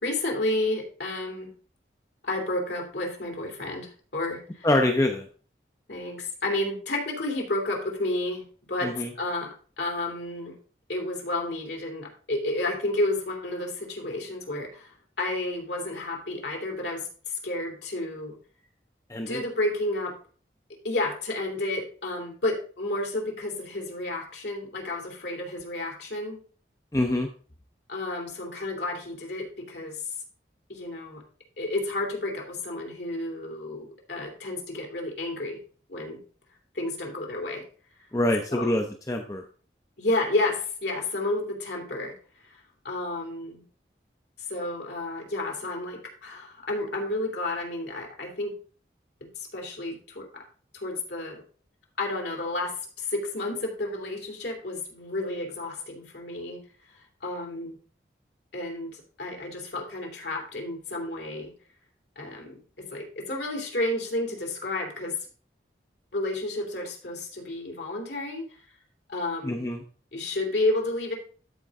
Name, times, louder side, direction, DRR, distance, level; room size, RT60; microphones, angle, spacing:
voice 1, 0.0-1.5 2.2-4.7 5.9-8.4 8.7-9.5 9.8-10.5 10.9-17.1 17.4-18.3 19.3-20.2 20.8-26.4 27.9-30.0 30.7-31.2 31.6-35.6 35.9-36.2 36.7-37.6 38.5-38.7 40.0-42.1 42.5-42.6 42.8-43.6 44.5-48.5 49.4-50.3 50.7-51.4 52.0-56.6 57.2-57.8 58.5-61.5 62.2-65.2 66.1-68.4 69.1-69.7 70.1-71.1, left 2 dB, 70° left, 1 dB, 2.7 m, -31 dB
voice 2, 4.6-5.3 8.8-9.1 19.1-19.4 26.9-27.3 38.1-39.4 69.4-69.8, left 1 dB, 20° left, 4 dB, 0.6 m, -25 dB
13.0 x 4.6 x 3.6 m, 0.41 s
head